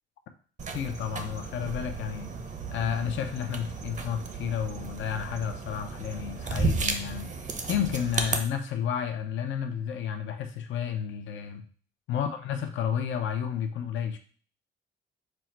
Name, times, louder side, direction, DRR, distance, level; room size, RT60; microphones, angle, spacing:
sound 1, 0.6-8.4, right 4 dB, 40° right, 0.7 m, -34 dB
voice 1, 0.7-2.3 2.7-7.3 7.7-11.6 12.1-14.2, left 8 dB, 75° left, 6 dB, 0.6 m, -31 dB
5.2 x 2.1 x 4.4 m, 0.42 s
cardioid pair, 90°, 20 cm